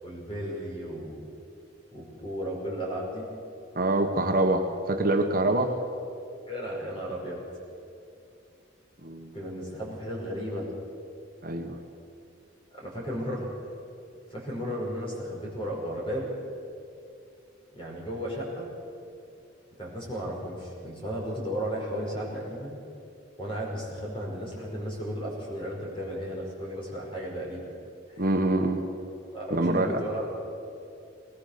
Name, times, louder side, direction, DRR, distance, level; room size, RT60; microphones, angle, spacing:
voice 1, 0.0-1.3 1.9-3.3 6.5-7.4 9.3-10.7 12.7-13.5 14.3-16.3 17.7-18.7 19.8-22.8 23.4-27.7 28.1-28.2 29.3-30.3, equal, 25° left, -3 dB, 5.5 m, -34 dB
voice 2, 3.7-5.8 9.0-9.3 11.4-11.8 28.2-28.8 29.5-30.0, right 2 dB, 45° right, 4 dB, 1.2 m, -25 dB
20.0 x 19.5 x 6.8 m, 2.5 s
head